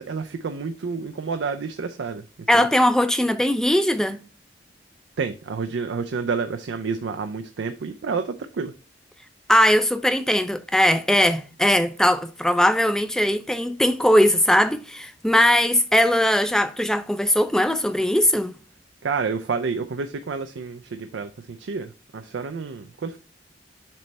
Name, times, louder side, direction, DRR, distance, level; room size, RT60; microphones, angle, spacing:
voice 1, 0.0-2.2 2.5-2.7 5.2-8.7 19.0-23.2, right 5 dB, 80° right, 0.4 m, -29 dB
voice 2, 2.5-4.2 9.5-18.5, left 1 dB, 5° left, 0.4 m, -20 dB
7.4 x 3.3 x 4.0 m
head